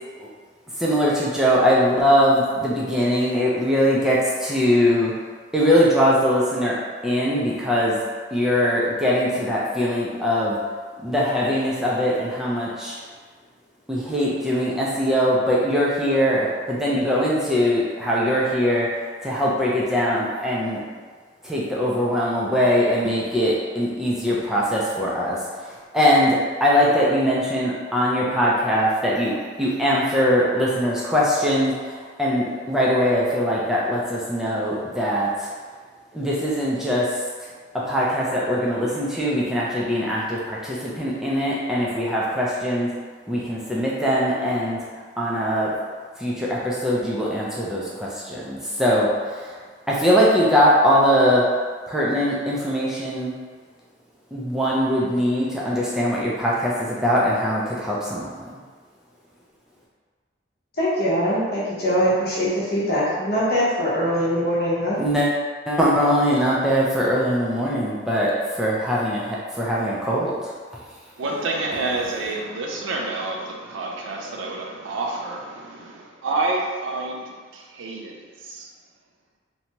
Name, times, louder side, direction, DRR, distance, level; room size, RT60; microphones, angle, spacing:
voice 1, 0.8-5.1 5.5-8.0 8.3-10.6 11.0-13.0 13.9-20.8 21.4-25.4 25.9-35.5 36.1-37.1 37.7-42.9 43.3-44.8 45.2-45.7 46.2-49.5 49.9-51.5 51.9-53.3 54.3-58.4 65.0-65.3 65.7-70.5, equal, 5° right, -6 dB, 0.4 m, -21 dB
voice 2, 60.8-65.0, equal, 55° left, -8 dB, 0.8 m, -22 dB
voice 3, 71.2-78.7, right 2 dB, 85° right, 0 dB, 0.4 m, -29 dB
2.7 x 2.2 x 2.9 m, 1.5 s
head